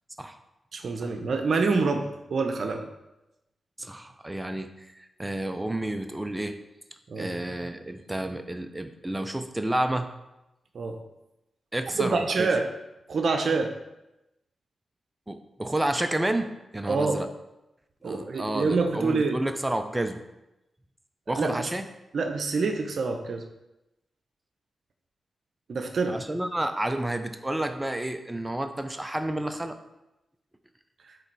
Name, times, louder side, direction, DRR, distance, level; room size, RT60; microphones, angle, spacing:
voice 1, 0.7-2.9 7.1-7.3 10.7-11.0 12.0-12.7 13.1-13.7 16.9-17.2 18.0-19.4 21.3-21.7 22.1-23.4 25.7-26.2, right 4 dB, 70° right, 5 dB, 0.7 m, -26 dB
voice 2, 3.8-4.7 5.0-6.5 7.2-10.1 11.7-12.5 15.3-17.3 18.0-20.2 21.3-21.9 26.1-29.8, right 1 dB, 15° right, 7 dB, 0.7 m, -30 dB
7.9 x 3.4 x 4.7 m, 0.92 s
supercardioid pair, 45°, 0 cm